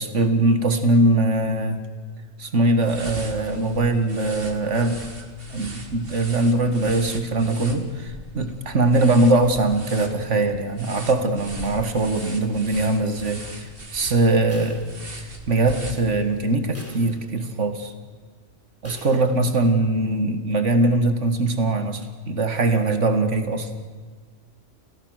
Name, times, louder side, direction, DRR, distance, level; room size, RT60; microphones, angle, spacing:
voice 1, 0.0-1.8 2.4-5.1 5.5-14.8 15.5-17.9 18.8-23.7, right 2 dB, 85° right, 8 dB, 2.2 m, -21 dB
paint brush, 2.8-16.5, right 2 dB, 50° right, 2.7 m, -39 dB
sound 1, 12.2-13.0 14.5-15.6 16.0-16.1 16.7-17.6 18.8-19.6, equal, 10° right, 3.7 m, -46 dB
28.5 x 16.5 x 6.6 m, 1.6 s
omnidirectional pair, 1.2 m